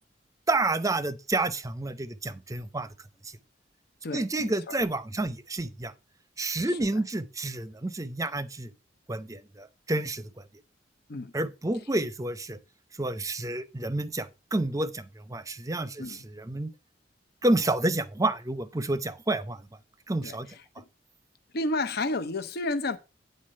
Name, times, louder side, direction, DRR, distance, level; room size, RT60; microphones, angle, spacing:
voice 1, 0.5-2.9 3.2-3.3 4.1-5.9 6.4-8.7 9.1-10.3 11.3-12.6 13.0-16.7 17.4-19.6 20.1-20.5, right 2 dB, 20° right, 0.7 m, -29 dB
voice 2, 4.0-4.8 6.7-6.9 11.1-11.3 16.0-16.2 20.2-20.8 21.5-23.0, left 2 dB, 60° left, 0.7 m, -32 dB
9.5 x 4.0 x 6.4 m
head